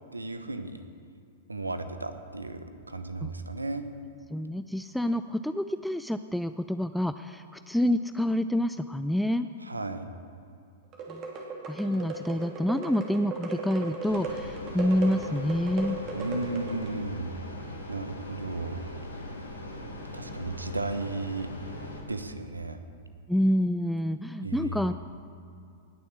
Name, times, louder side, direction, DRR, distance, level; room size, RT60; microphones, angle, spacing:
voice 1, 0.1-0.8 1.5-3.8 9.6-10.1 16.1-17.3 17.9-18.8 20.1-21.5 22.1-22.8 24.4-24.8, right 2 dB, 85° right, 9 dB, 1.0 m, -34 dB
voice 2, 4.3-9.5 11.1-11.3 11.7-16.0 23.3-24.9, left 1 dB, ahead, 10 dB, 0.4 m, -28 dB
sound 1, 10.9-17.0, right 3 dB, 35° right, 2.9 m, -37 dB
sound 2, 14.1-22.0, left 1 dB, 85° left, 2.6 m, -40 dB
19.5 x 7.1 x 7.3 m, 2.5 s
figure-of-eight pair, 100°, 0 cm